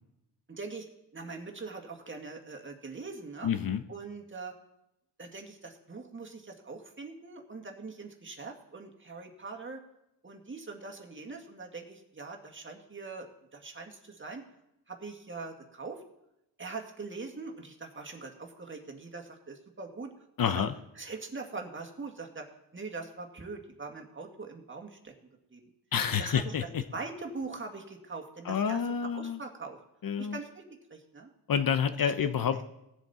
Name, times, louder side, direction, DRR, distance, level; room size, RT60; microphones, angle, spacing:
voice 1, 0.5-0.9 1.1-3.5 3.9-4.6 5.2-9.8 10.2-13.3 13.5-14.4 14.9-16.0 16.6-20.1 20.5-20.6 21.0-22.5 22.7-25.1 25.5-25.6 26.2-29.8 30.2-30.6 30.9-31.3 32.0-32.1, right 4 dB, 30° right, 2 dB, 2.0 m, -42 dB
voice 2, 3.4-3.8 20.4-20.7 25.9-26.8 28.4-29.4 30.0-30.4 31.5-32.6, left 7 dB, 50° left, 10 dB, 0.8 m, -28 dB
18.0 x 7.4 x 4.3 m, 0.88 s
cardioid pair, 80°, 42 cm